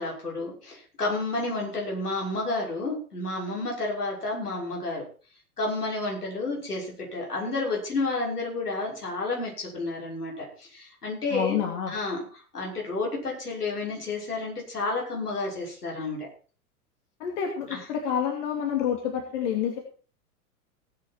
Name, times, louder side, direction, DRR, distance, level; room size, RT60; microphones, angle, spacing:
voice 1, 0.0-5.1 5.6-11.6 11.9-12.2 12.5-16.3 17.7-17.8, left 3 dB, 80° left, -2 dB, 6.3 m, -31 dB
voice 2, 11.3-11.9 17.2-19.8, left 8 dB, 50° left, 3 dB, 2.6 m, -28 dB
18.0 x 8.9 x 4.5 m, 0.38 s
figure-of-eight pair, 90°, 45 cm